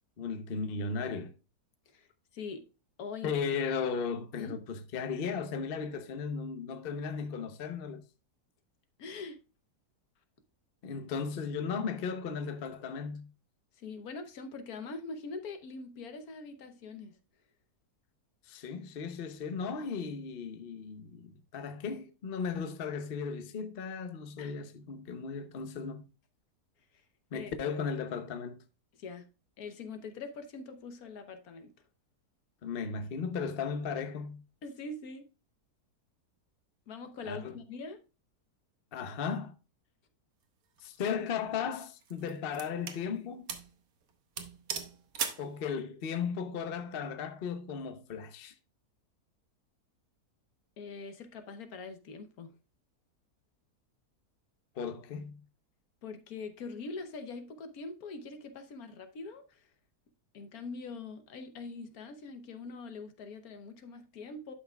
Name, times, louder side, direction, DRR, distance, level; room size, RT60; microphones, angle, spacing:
voice 1, 0.2-1.3 3.2-8.0 10.8-13.3 18.5-26.0 27.3-28.6 32.6-34.4 37.2-37.6 38.9-39.5 40.8-43.5 45.4-48.5 54.8-55.4, left 6 dB, 45° left, 0.8 m, -36 dB
voice 2, 2.3-2.6 3.0-3.3 4.4-4.6 9.0-9.4 13.8-17.2 24.4-24.6 27.3-27.5 29.0-29.3 29.6-31.7 34.6-35.3 36.9-38.0 50.8-52.5 56.0-59.7 60.3-64.5, left 4 dB, 70° left, 1.4 m, -43 dB
sound 1, 40.8-41.1 41.8-43.0 43.5-43.7 44.0-44.1 44.4-45.5, right 7 dB, 65° right, 1.5 m, -38 dB
11.0 x 5.8 x 2.2 m
omnidirectional pair, 1.7 m